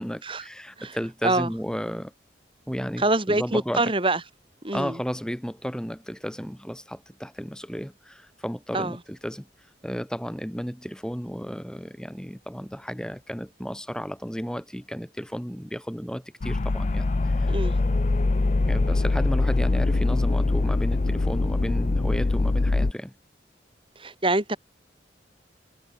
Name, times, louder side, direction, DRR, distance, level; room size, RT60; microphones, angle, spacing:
voice 1, 0.0-2.1 2.7-3.8 4.7-9.5 9.8-17.5 18.7-23.1, equal, 5° left, 5.0 m, -33 dB
voice 2, 3.0-4.2 4.6-5.0 8.7-9.0 17.4-17.8 24.0-24.6, right 2 dB, 30° right, 5.2 m, -25 dB
sound 1, 16.4-22.9, left 2 dB, 40° left, 0.5 m, -23 dB
head